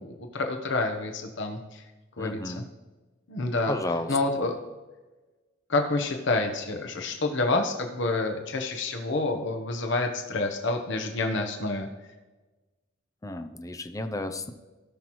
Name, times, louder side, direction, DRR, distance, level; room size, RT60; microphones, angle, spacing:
voice 1, 0.0-1.8 2.2-2.6 3.3-3.8 4.1-4.6 5.7-11.9, left 2 dB, 65° left, 4 dB, 1.0 m, -28 dB
voice 2, 2.2-2.7 3.7-4.1 13.2-14.5, left 2 dB, 15° left, 8 dB, 0.6 m, -32 dB
17.0 x 5.9 x 3.1 m, 1.2 s
head